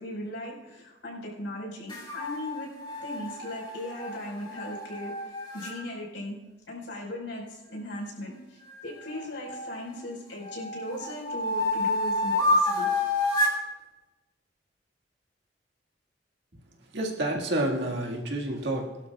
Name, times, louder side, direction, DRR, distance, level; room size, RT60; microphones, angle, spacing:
voice 1, 0.0-2.7 3.0-6.4 6.7-12.9, left 1 dB, 85° left, -3 dB, 5.1 m, -38 dB
sound 1, 1.9-5.7 8.7-9.9 10.4-13.6, left 1 dB, 25° left, 3.2 m, -29 dB
voice 2, 16.9-19.0, right 1 dB, 65° right, 0 dB, 2.0 m, -29 dB
22.0 x 12.0 x 2.4 m, 1.1 s
head